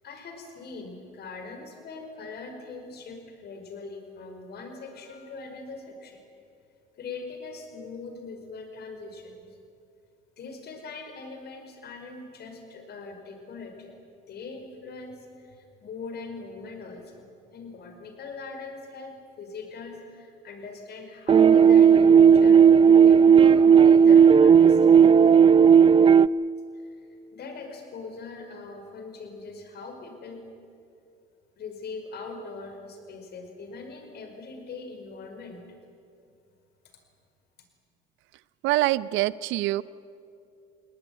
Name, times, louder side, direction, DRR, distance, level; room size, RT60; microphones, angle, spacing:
voice 1, 0.0-6.2 7.0-9.4 10.4-14.0 14.3-22.6 23.0-25.0 26.8-27.1 27.3-30.4 31.6-35.6, left 4 dB, 55° left, 5 dB, 5.2 m, -41 dB
sound 1, 21.3-26.3, right 7 dB, 25° right, 0.4 m, -14 dB
voice 2, 38.6-39.8, right 17 dB, 65° right, 19 dB, 0.6 m, -24 dB
19.5 x 19.5 x 9.5 m, 2.5 s
supercardioid pair, 80°, 21 cm